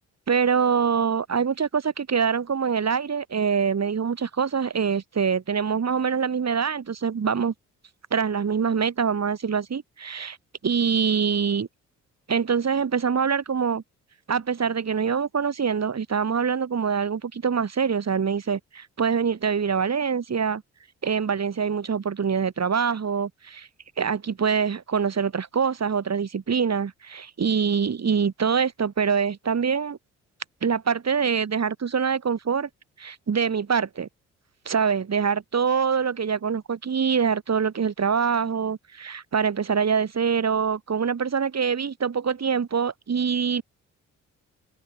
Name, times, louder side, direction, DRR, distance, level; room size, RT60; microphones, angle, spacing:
voice 1, 0.3-7.5 8.1-10.4 10.6-11.7 12.3-13.8 14.3-20.6 21.0-23.7 24.0-30.0 30.6-32.7 33.0-34.1 34.7-43.6, right 6 dB, 40° right, 3.8 m, -24 dB
hypercardioid pair, 45°, 39 cm